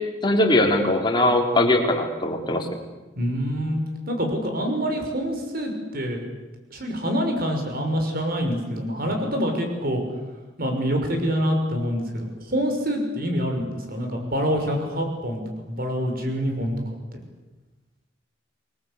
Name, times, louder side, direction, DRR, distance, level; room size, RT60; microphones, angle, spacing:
voice 1, 0.2-2.7, left 1 dB, 25° left, 2 dB, 3.8 m, -20 dB
voice 2, 3.2-3.8 4.1-6.2 6.7-10.0 10.6-16.7 17.1-17.2, equal, 50° right, 4 dB, 6.0 m, -26 dB
28.5 x 20.5 x 8.4 m, 1.1 s
head